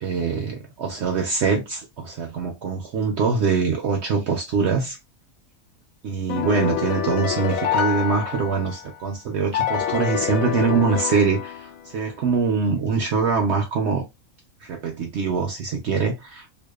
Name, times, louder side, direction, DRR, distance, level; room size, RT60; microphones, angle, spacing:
voice 1, 0.0-5.0 6.0-14.1 14.6-16.5, right 5 dB, 65° right, 0.7 m, -23 dB
sound 1, 6.3-8.9 9.5-12.0, left 9 dB, 75° left, 1.0 m, -26 dB
2.6 x 2.2 x 2.2 m
omnidirectional pair, 1.5 m